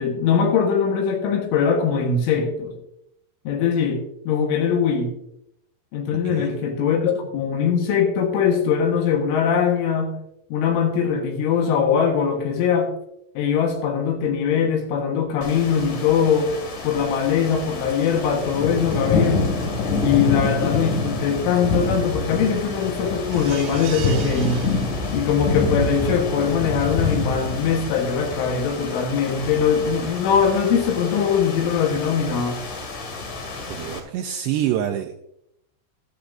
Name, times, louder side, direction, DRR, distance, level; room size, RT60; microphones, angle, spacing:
voice 1, 0.0-2.8 3.5-5.1 5.9-10.2 10.5-12.9 13.4-16.6 16.8-19.5 20.0-24.6 25.1-32.6, left 7 dB, 80° left, 2 dB, 3.8 m, -21 dB
sound 1, 15.4-34.0, left 3 dB, 50° left, 2.9 m, -27 dB
sound 2, 23.3-25.5 26.0-26.1 26.4-26.5, right 8 dB, 65° right, 2.6 m, -38 dB
voice 2, 33.7-35.2, right 11 dB, 80° right, 5 dB, 2.5 m, -26 dB
15.0 x 12.5 x 2.6 m, 0.76 s
omnidirectional pair, 5.6 m